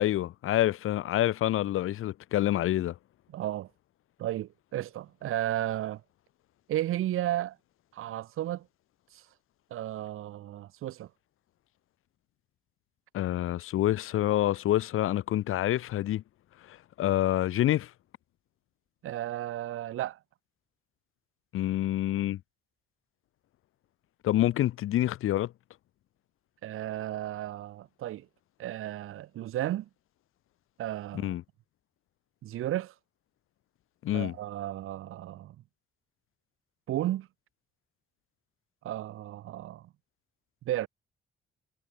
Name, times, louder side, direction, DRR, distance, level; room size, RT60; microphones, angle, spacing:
voice 1, 0.0-2.9 13.1-16.2 17.0-17.9 21.5-22.4 24.2-25.5 31.1-31.4 34.0-34.3, left 13 dB, 90° left, 3.3 m, -27 dB
voice 2, 3.3-3.7 4.2-6.0 6.7-7.6 7.9-8.7 9.1-9.2 9.7-11.1 19.0-20.2 26.6-28.3 28.6-29.9 30.8-31.4 32.4-32.9 34.1-35.5 36.9-37.3 38.8-39.9 40.6-40.9, right 13 dB, 90° right, 3.4 m, -33 dB
cardioid pair, 180°, 21 cm